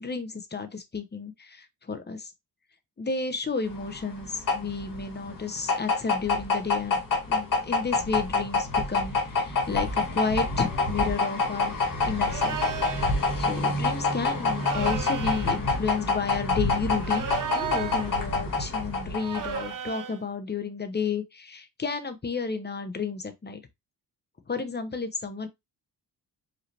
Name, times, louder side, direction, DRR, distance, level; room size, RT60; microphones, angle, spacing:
voice 1, 0.0-2.3 3.0-7.0 7.3-11.8 12.0-12.6 13.4-17.3 17.5-23.6 24.5-25.5, left 5 dB, 25° left, 0.8 m, -32 dB
sound 1, 3.7-19.7, left 3 dB, 50° left, 1.9 m, -27 dB
sound 2, 12.2-13.1 14.5-15.6 17.0-18.2 19.2-20.2, right 9 dB, 50° right, 0.8 m, -35 dB
5.1 x 2.7 x 3.3 m
cardioid pair, 90°, 42 cm